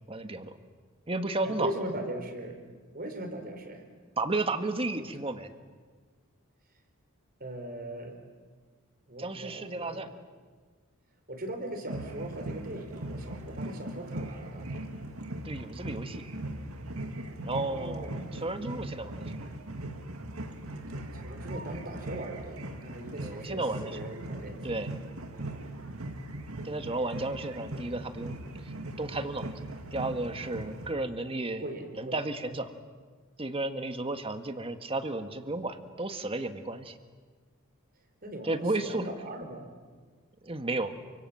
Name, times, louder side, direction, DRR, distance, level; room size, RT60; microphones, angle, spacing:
voice 1, 0.1-0.5 1.1-1.7 4.2-5.5 9.2-10.1 15.4-16.2 17.4-19.4 23.2-24.0 24.6-24.9 26.6-28.4 29.0-29.5 29.9-31.6 31.9-32.7 33.4-37.0 38.4-39.1 40.4-40.9, right 2 dB, 25° right, 8 dB, 1.7 m, -33 dB
voice 2, 1.4-2.6 2.9-3.8 5.0-5.1 7.4-8.2 9.1-10.0 11.3-14.8 17.6-18.2 21.1-24.9 25.3-25.8 31.6-32.2 38.2-39.7, right 1 dB, 45° right, 5 dB, 4.5 m, -39 dB
sound 1, 11.9-30.9, right 1 dB, 70° right, 2.4 m, -39 dB
29.5 x 25.5 x 7.5 m, 1.5 s
head